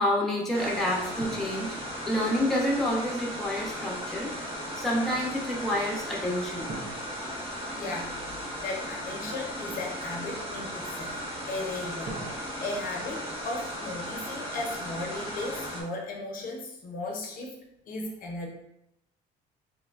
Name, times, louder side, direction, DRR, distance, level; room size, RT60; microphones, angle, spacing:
voice 1, 0.0-1.8 2.1-4.3 4.7-6.7, left 1 dB, ahead, -3 dB, 0.8 m, -28 dB
sound 1, 0.5-15.8, equal, 35° right, 1.1 m, -36 dB
sound 2, 1.2-2.8 6.7-8.6 12.0-14.3, right 2 dB, 50° right, 0.7 m, -45 dB
voice 2, 7.8-8.2 8.6-11.2 11.5-12.2 12.6-17.6 17.9-18.5, left 2 dB, 55° left, 0 dB, 0.7 m, -36 dB
3.2 x 2.1 x 3.4 m, 0.81 s
cardioid pair, 110°, 17 cm